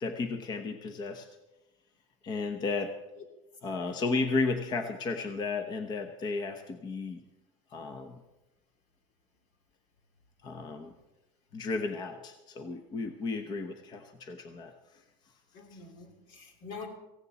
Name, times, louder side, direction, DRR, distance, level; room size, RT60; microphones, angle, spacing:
voice 1, 0.0-1.3 2.2-3.0 3.6-7.2 7.7-8.2 10.4-10.9 11.5-15.0 15.7-15.8, left 3 dB, 25° left, 7 dB, 0.8 m, -34 dB
voice 2, 3.8-4.1 15.5-16.9, left 4 dB, 70° left, 4 dB, 3.3 m, -46 dB
17.0 x 16.0 x 4.1 m, 1.0 s
cardioid pair, 170°, 17 cm